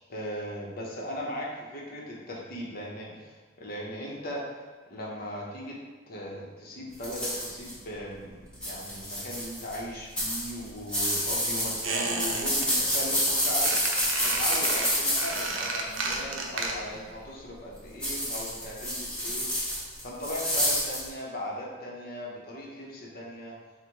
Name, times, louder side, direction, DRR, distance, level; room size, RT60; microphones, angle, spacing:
voice 1, 0.1-4.4 4.9-5.8 6.1-13.7 14.2-19.5 20.0-23.6, equal, 50° left, -3 dB, 0.8 m, -38 dB
sound 1, 7.0-7.7 8.5-9.8 10.2-16.1 18.0-21.0, equal, 5° left, 1.1 m, -28 dB
Squeak, 11.8-12.7 12.9-13.3 13.6-17.0 17.3-17.4, right 3 dB, 70° right, 0.5 m, -32 dB
4.0 x 2.1 x 4.6 m, 1.4 s
head